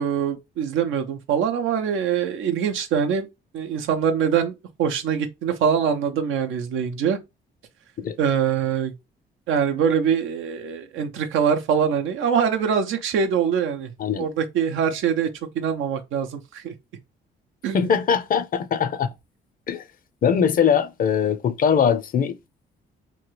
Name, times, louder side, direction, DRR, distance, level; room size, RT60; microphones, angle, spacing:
voice 1, 0.0-3.3 3.5-4.5 4.8-7.2 8.2-8.9 9.5-13.9 14.2-15.3 15.5-16.7 17.6-17.9, right 7 dB, 85° right, 0.6 m, -23 dB
voice 2, 17.7-19.1 19.7-19.8 20.2-22.4, left 7 dB, 45° left, 0.5 m, -21 dB
3.0 x 2.3 x 3.1 m
cardioid pair, 90°, 20 cm